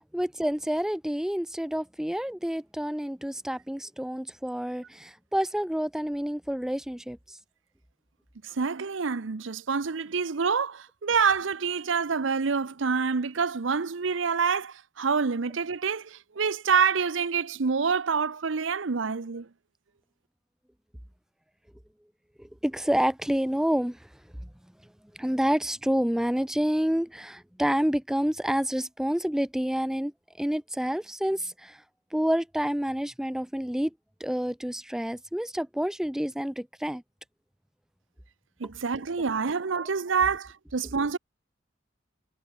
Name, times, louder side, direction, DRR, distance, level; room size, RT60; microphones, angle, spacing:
voice 1, 0.0-7.4 22.4-24.1 25.1-30.1 30.4-31.8 32.1-33.9 34.2-37.0 39.7-39.8, equal, 5° right, 0.4 m, -28 dB
voice 2, 8.4-19.5 38.6-41.2, right 5 dB, 90° right, 0.8 m, -27 dB
head